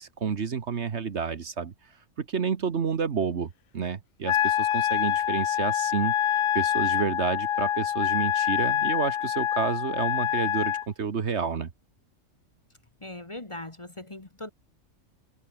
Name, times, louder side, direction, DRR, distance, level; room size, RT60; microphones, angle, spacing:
voice 1, 0.0-1.7 2.2-11.7, right 6 dB, 55° right, 1.5 m, -30 dB
Wind instrument woodwind instrument, 4.3-10.9, left 10 dB, 55° left, 0.6 m, -26 dB
voice 2, 13.0-14.5, left 1 dB, 25° left, 1.5 m, -40 dB
omnidirectional pair, 1.4 m